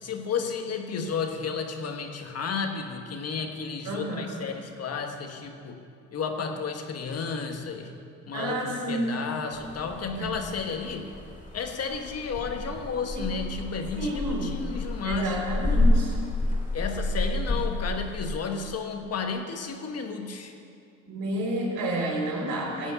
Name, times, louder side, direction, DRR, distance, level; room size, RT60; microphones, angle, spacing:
voice 1, 0.0-5.8 6.1-7.9 8.3-11.1 11.5-15.3 16.7-20.5, left 5 dB, 55° left, 4 dB, 1.4 m, -32 dB
voice 2, 3.8-4.5 8.3-9.1 10.2-10.4 13.1-13.2 14.0-14.6 15.0-16.1 21.1-22.9, right 1 dB, 90° right, -2 dB, 3.7 m, -30 dB
sound 1, 9.5-18.4, left 2 dB, 25° left, 2.8 m, -29 dB
16.0 x 5.4 x 8.1 m, 2.4 s
cardioid pair, 90°, 30 cm